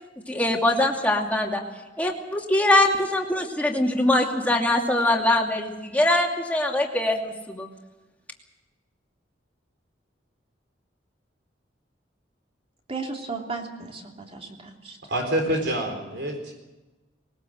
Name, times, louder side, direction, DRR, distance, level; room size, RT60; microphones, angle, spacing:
voice 1, 0.3-1.6 2.0-7.7, left 1 dB, 10° left, 0 dB, 2.6 m, -22 dB
voice 2, 12.9-15.0, right 4 dB, 35° right, 1 dB, 3.1 m, -35 dB
voice 3, 15.1-16.5, right 1 dB, 65° right, 3 dB, 4.2 m, -26 dB
20.5 x 19.0 x 7.8 m, 1.1 s
head